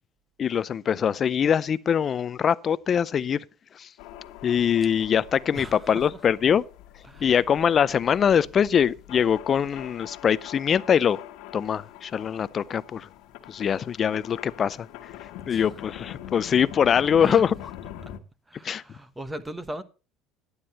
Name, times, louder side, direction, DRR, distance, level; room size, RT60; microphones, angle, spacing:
voice 1, 0.4-3.4 3.8-3.9 4.4-6.6 7.2-11.2 11.5-13.1 13.5-14.9 15.5-17.5 18.6-18.8, left 8 dB, 35° left, 0.5 m, -23 dB
sound 1, 4.0-18.2, left 11 dB, 75° left, 1.5 m, -44 dB
voice 2, 5.5-6.2 7.0-7.4 15.4-15.8 17.0-17.5 18.5-19.8, right 1 dB, 10° right, 1.2 m, -39 dB
12.0 x 9.6 x 4.3 m
cardioid pair, 130°, 0 cm